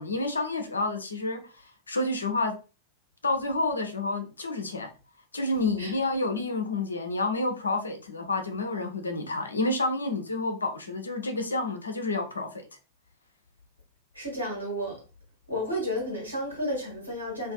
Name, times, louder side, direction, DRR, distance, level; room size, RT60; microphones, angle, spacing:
voice 1, 0.0-2.6 3.2-4.9 5.3-12.6, left 2 dB, 75° left, 0.6 m, -29 dB
voice 2, 5.5-5.9 14.1-15.0 15.5-17.5, equal, 90° right, 1.3 m, -32 dB
2.6 x 2.5 x 2.2 m
figure-of-eight pair, 90°, 0 cm